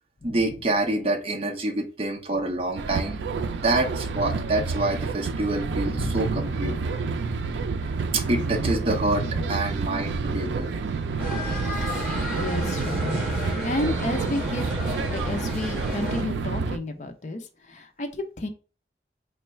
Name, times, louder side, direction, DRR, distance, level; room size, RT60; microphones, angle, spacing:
voice 1, 0.2-3.2 3.6-6.7 8.1-10.7, right 2 dB, 35° right, 2 dB, 0.6 m, -27 dB
sound 1, 2.8-16.8, right 4 dB, 90° right, 0.4 m, -29 dB
voice 2, 5.8-6.8 9.3-9.4 12.3-14.6 15.1-18.5, left 1 dB, 40° left, 6 dB, 0.5 m, -32 dB
sound 2, 11.2-16.2, equal, 5° right, 1.5 m, -32 dB
3.1 x 2.3 x 4.3 m, 0.36 s
head